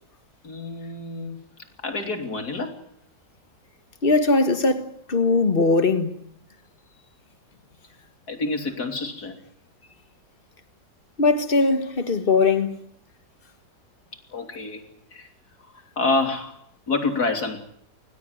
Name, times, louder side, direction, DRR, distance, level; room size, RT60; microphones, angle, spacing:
voice 1, 0.4-1.4 1.8-2.7 8.3-9.4 14.3-14.8 15.1-15.3 16.0-16.6 16.9-17.6, left 3 dB, 60° left, 3.6 m, -27 dB
voice 2, 4.0-6.1 11.2-12.8, left 3 dB, 30° left, 1.9 m, -20 dB
20.5 x 20.0 x 9.6 m
omnidirectional pair, 1.9 m